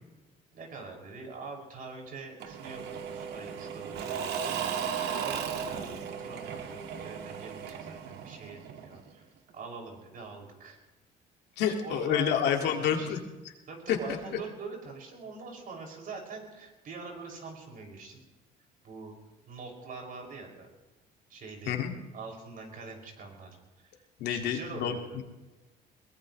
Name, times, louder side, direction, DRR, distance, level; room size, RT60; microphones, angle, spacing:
voice 1, 0.5-4.8 5.2-9.3 9.5-10.8 11.6-13.2 13.7-18.2 18.8-19.1 19.5-20.7 21.3-21.7 22.1-23.6 23.8-24.0 24.3-25.2, right 4 dB, 55° right, 1 dB, 6.0 m, -44 dB
Engine / Mechanisms / Drill, 2.4-9.1, right 7 dB, 75° right, 1.8 m, -36 dB
voice 2, 11.6-13.2 13.9-14.0 21.7-21.9 24.2-25.2, left 8 dB, 80° left, 3 dB, 2.1 m, -28 dB
22.0 x 20.5 x 3.2 m, 1.1 s
cardioid pair, 110°, 17 cm